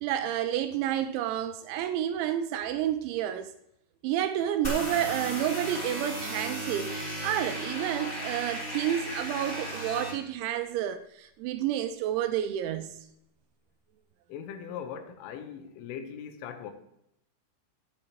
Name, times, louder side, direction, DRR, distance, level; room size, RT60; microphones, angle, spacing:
voice 1, 0.0-3.5 4.0-6.9 7.2-13.0, right 11 dB, 85° right, 2.7 m, -30 dB
sound 1, 4.6-10.1, right 1 dB, 15° left, 2.0 m, -35 dB
voice 2, 14.3-16.7, left 8 dB, 85° left, 3.5 m, -40 dB
15.0 x 8.2 x 3.0 m
omnidirectional pair, 5.7 m